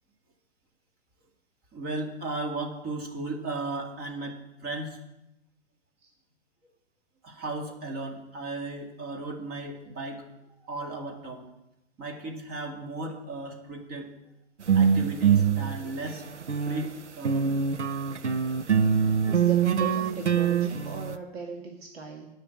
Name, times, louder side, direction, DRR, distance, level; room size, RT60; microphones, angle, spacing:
voice 1, 1.7-5.0 7.2-10.2 10.6-11.5 12.0-14.1 14.7-16.2 16.6-17.6, right 2 dB, 25° right, 3 dB, 2.2 m, -35 dB
sound 1, 14.6-16.9 17.2-21.2, right 7 dB, 85° right, 0.8 m, -24 dB
voice 2, 19.3-22.3, right 4 dB, 60° right, 1 dB, 2.0 m, -37 dB
9.7 x 6.3 x 8.7 m, 0.91 s
figure-of-eight pair, 115°, 35 cm